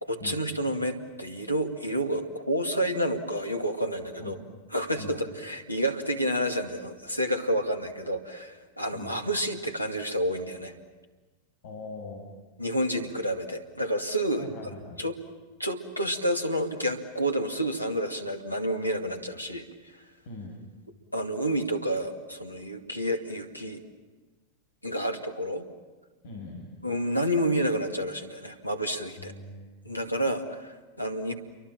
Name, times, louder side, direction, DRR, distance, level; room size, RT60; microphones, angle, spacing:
voice 1, 0.0-4.4 4.7-10.7 12.6-14.5 15.0-15.2 15.6-19.7 21.1-23.8 24.8-25.7 26.8-29.3 29.8-31.3, equal, 85° left, 4 dB, 2.2 m, -29 dB
voice 2, 11.6-12.3 14.4-15.0 20.2-20.5 26.2-26.6 29.2-29.7, left 3 dB, 55° left, -1 dB, 6.4 m, -41 dB
29.5 x 24.0 x 7.5 m, 1.3 s
figure-of-eight pair, 90°, 0 cm